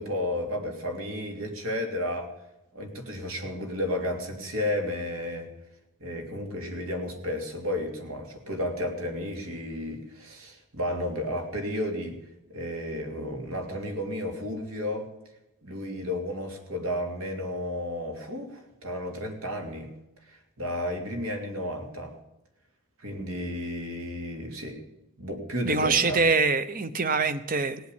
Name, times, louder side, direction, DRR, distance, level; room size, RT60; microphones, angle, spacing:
voice 1, 0.0-2.3 2.7-5.5 6.0-12.2 12.5-15.1 15.6-19.9 20.3-22.1 23.0-24.8 25.2-26.2, left 1 dB, 70° right, 3 dB, 3.1 m, -32 dB
voice 2, 25.6-27.8, right 4 dB, 40° right, 12 dB, 0.9 m, -24 dB
18.0 x 8.1 x 8.5 m, 0.89 s
head